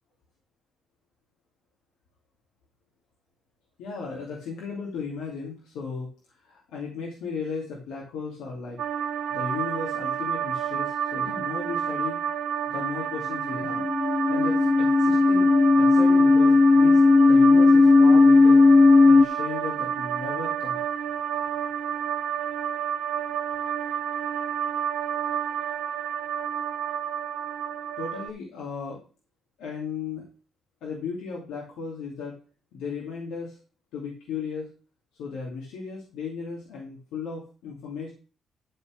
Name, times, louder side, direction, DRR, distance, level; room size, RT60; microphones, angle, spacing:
voice 1, 3.8-6.1 6.4-8.8 9.3-12.2 12.7-13.9 14.3-17.0 17.3-18.6 19.0-20.8 28.0-29.0 29.6-30.3 30.8-32.3 32.7-33.6 33.9-34.7 35.2-38.1, left 5 dB, 90° left, -2 dB, 2.6 m, -35 dB
sound 1, 8.8-28.3, right 9 dB, 75° right, 1.0 m, -30 dB
sound 2, 13.5-19.3, left 3 dB, 35° left, 0.8 m, -16 dB
12.0 x 4.1 x 6.5 m, 0.37 s
cardioid pair, 90°, 0 cm